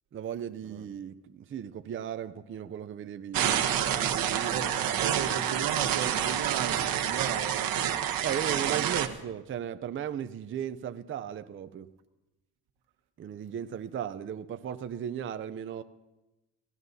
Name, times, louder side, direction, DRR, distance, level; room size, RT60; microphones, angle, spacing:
voice 1, 0.1-5.6 8.2-11.9 13.2-15.8, right 9 dB, 35° right, 0.5 m, -36 dB
sound 1, 3.3-9.1, right 10 dB, 65° right, 1.1 m, -28 dB
voice 2, 5.0-7.7 8.6-9.1, right 8 dB, 85° right, 1.5 m, -36 dB
25.5 x 16.0 x 2.7 m
cardioid pair, 125°, 38 cm